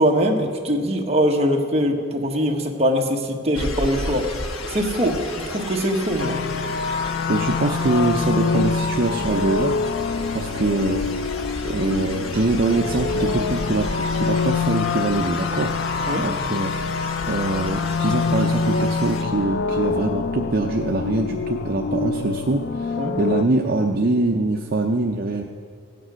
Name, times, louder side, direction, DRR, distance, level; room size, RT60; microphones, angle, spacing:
voice 1, 0.0-4.3 4.7-6.4 16.1-16.3 23.0-23.2, equal, 30° right, 0 dB, 1.4 m, -22 dB
sound 1, 3.5-19.2, left 2 dB, 85° left, 1.2 m, -33 dB
sound 2, 6.2-23.4, left 4 dB, 50° left, 0.4 m, -25 dB
voice 2, 7.3-9.8 10.3-11.0 11.6-15.7 16.2-16.7 17.3-25.4, right 2 dB, 45° right, 2 dB, 0.7 m, -23 dB
16.0 x 9.2 x 6.3 m, 2.1 s
head